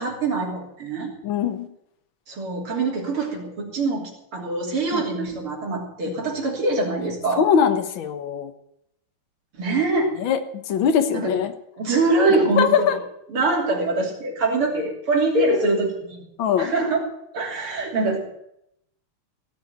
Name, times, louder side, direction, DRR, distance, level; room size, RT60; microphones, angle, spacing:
voice 1, 0.0-1.1 2.3-7.5 9.6-10.1 11.1-11.4 11.8-13.0 13.3-16.2 16.6-17.1 17.3-18.2, right 3 dB, 85° right, 0 dB, 4.0 m, -24 dB
voice 2, 1.2-1.7 4.9-5.0 6.1-6.2 7.4-8.5 10.2-11.5 12.3-13.0 16.4-16.7, left 7 dB, 70° left, 7 dB, 1.9 m, -22 dB
17.0 x 6.7 x 9.3 m, 0.78 s
omnidirectional pair, 2.3 m